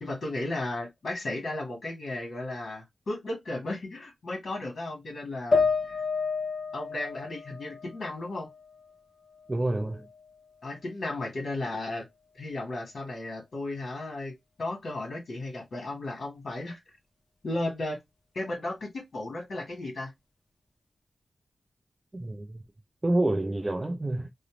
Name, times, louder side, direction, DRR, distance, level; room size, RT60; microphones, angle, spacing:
voice 1, 0.0-6.0 6.7-8.5 10.6-12.1 12.4-16.8 17.4-18.0 18.3-20.1, left 2 dB, 65° left, 1.2 m, -35 dB
sound 1, 5.5-8.9 9.3-10.3, left 4 dB, 40° left, 0.5 m, -30 dB
voice 2, 9.5-10.0 22.1-22.6 23.0-24.3, right 1 dB, 25° right, 0.3 m, -28 dB
2.5 x 2.0 x 2.9 m
wide cardioid pair, 95°, 0 cm